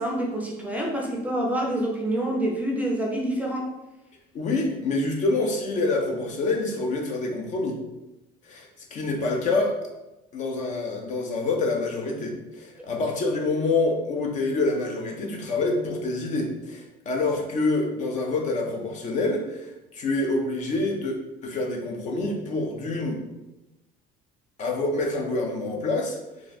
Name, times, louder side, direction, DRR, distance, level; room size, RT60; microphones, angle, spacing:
voice 1, 0.0-3.7, right 1 dB, 10° right, -1 dB, 0.5 m, -27 dB
voice 2, 4.3-7.8 8.5-9.7 10.3-21.2 21.4-23.2 24.6-26.2, left 2 dB, 45° left, 2 dB, 0.7 m, -26 dB
3.1 x 2.4 x 4.0 m, 0.96 s
cardioid pair, 140°, 18 cm